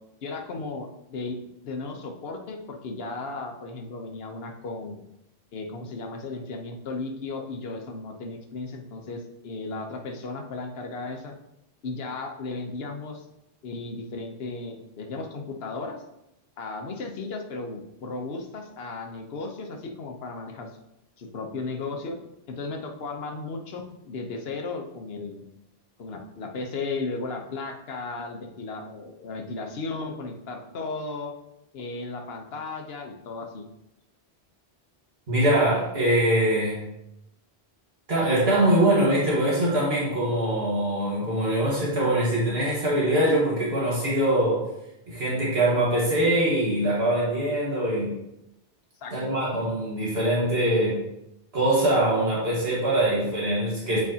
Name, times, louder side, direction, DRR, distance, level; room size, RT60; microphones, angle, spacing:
voice 1, 0.2-5.0 5.5-11.3 11.8-13.2 13.6-16.0 16.6-20.7 21.2-22.2 22.5-25.4 26.0-31.3 31.7-33.7 49.0-49.1, left 3 dB, 70° left, 3 dB, 1.1 m, -35 dB
voice 2, 35.3-36.8 38.1-44.6 45.1-48.1 49.1-51.0 51.5-54.0, right 1 dB, 70° right, -7 dB, 1.9 m, -23 dB
8.5 x 4.7 x 2.8 m, 0.86 s
omnidirectional pair, 1.1 m